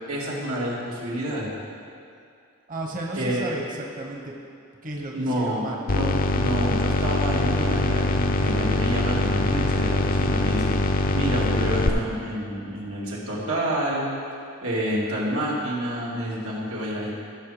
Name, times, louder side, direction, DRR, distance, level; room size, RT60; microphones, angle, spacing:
voice 1, 0.1-1.5 3.1-3.4 5.1-14.1 14.6-17.1, equal, 85° right, -6 dB, 2.5 m, -28 dB
voice 2, 2.7-4.4 4.8-5.9, right 2 dB, 40° right, 0 dB, 1.1 m, -33 dB
sound 1, 5.9-11.9, left 2 dB, 40° left, 0.5 m, -23 dB
15.5 x 6.6 x 5.0 m, 2.4 s
head